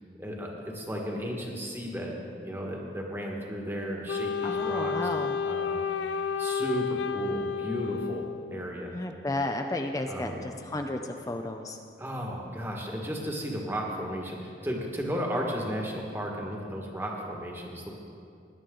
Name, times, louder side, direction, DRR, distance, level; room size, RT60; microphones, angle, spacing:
voice 1, 0.2-4.9 5.4-5.8 6.4-8.2 8.5-8.9 10.1-10.4 12.0-17.9, equal, 15° right, -1 dB, 1.5 m, -34 dB
Wind instrument woodwind instrument, 4.1-8.7, left 6 dB, 75° left, 0.4 m, -31 dB
voice 2, 4.4-5.4 8.9-11.8, left 2 dB, 20° left, 5 dB, 0.5 m, -33 dB
18.0 x 10.5 x 3.8 m, 2.5 s
head